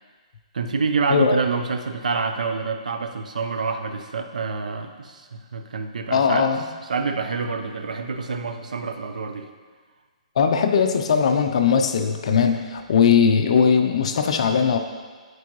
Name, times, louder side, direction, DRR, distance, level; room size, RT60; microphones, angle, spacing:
voice 1, 0.5-6.5 6.9-9.5, right 4 dB, 90° right, 6 dB, 0.7 m, -27 dB
voice 2, 1.1-1.4 6.1-6.6 10.4-14.8, left 6 dB, 55° left, 6 dB, 0.5 m, -19 dB
11.0 x 4.6 x 3.1 m, 1.5 s
hypercardioid pair, 160°, 4 cm